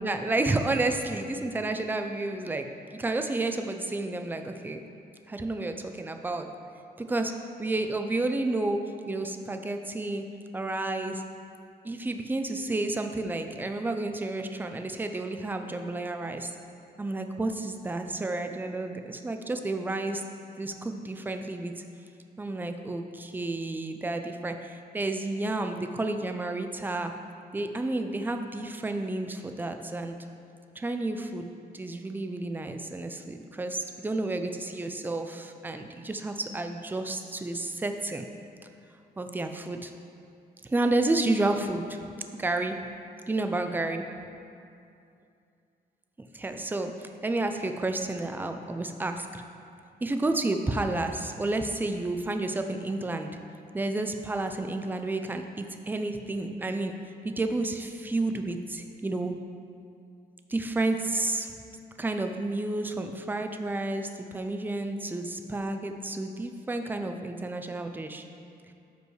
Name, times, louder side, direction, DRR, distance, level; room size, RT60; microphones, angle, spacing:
voice 1, 0.0-4.8 5.3-6.5 7.0-7.3 7.6-8.8 9.1-10.2 10.5-11.2 11.8-16.5 17.0-20.2 20.6-21.8 22.4-27.1 27.5-30.2 30.8-31.5 31.7-38.3 39.2-39.9 40.6-42.0 42.4-42.8 43.3-44.1 46.2-49.4 50.0-53.3 53.7-56.9 57.2-59.3 60.5-61.5 62.0-68.2, right 2 dB, 10° right, 6 dB, 0.4 m, -31 dB
12.5 x 5.3 x 3.2 m, 2.5 s
wide cardioid pair, 145°, 17 cm